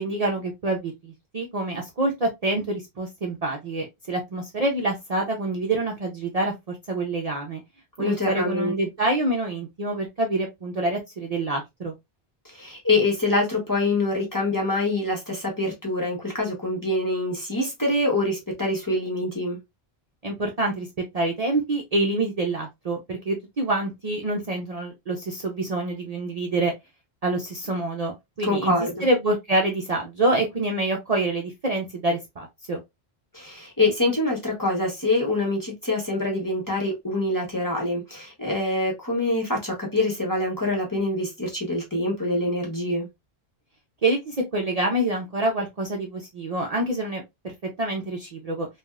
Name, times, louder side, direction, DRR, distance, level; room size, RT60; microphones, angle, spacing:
voice 1, 0.0-7.6 8.0-11.9 20.2-20.9 21.1-26.7 27.2-28.7 29.0-32.8 44.0-47.5 47.8-48.7, right 2 dB, 45° right, 0.6 m, -26 dB
voice 2, 8.0-8.7 12.4-19.6 28.4-29.1 33.3-43.1, left 2 dB, 20° left, 0.9 m, -25 dB
3.3 x 2.3 x 2.3 m
omnidirectional pair, 1.0 m